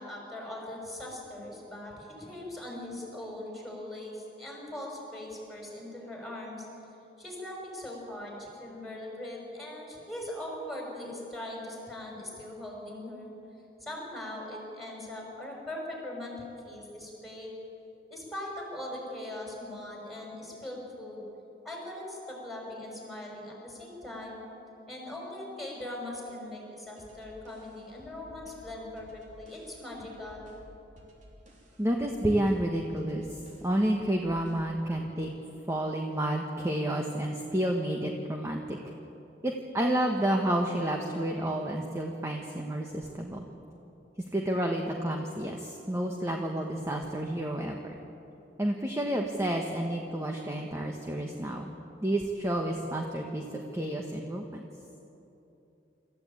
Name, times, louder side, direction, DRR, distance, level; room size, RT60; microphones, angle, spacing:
voice 1, 0.0-6.7 7.2-13.3 13.8-17.5 18.1-21.2 21.6-24.4 24.9-30.5, left 1 dB, ahead, -2 dB, 6.0 m, -40 dB
sound 1, 27.0-34.8, equal, 45° right, 3.4 m, -55 dB
voice 2, 31.8-33.3 33.6-35.3 35.7-38.8 39.4-43.4 44.3-48.0 48.6-51.7 52.0-54.6, right 1 dB, 15° right, 1 dB, 1.3 m, -30 dB
26.0 x 14.0 x 8.8 m, 3.0 s
head